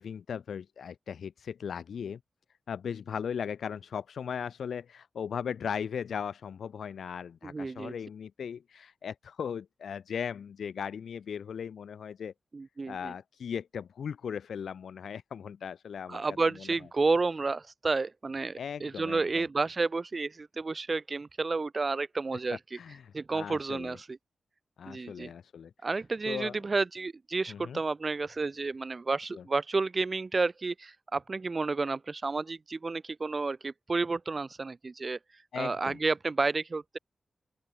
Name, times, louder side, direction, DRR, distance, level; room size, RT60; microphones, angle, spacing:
voice 1, 0.0-2.2 2.7-12.3 12.9-16.2 16.6-16.7 18.6-19.5 22.7-24.0 24.8-25.7 26.3-26.6 27.5-27.8 29.3-29.4 35.5-36.0, left 7 dB, 85° left, 4.2 m, -38 dB
voice 2, 7.4-7.9 12.5-13.1 16.1-22.8 23.1-24.2 24.9-25.3 25.8-37.0, right 3 dB, 35° right, 0.6 m, -31 dB
open air
wide cardioid pair, 130°, 0 cm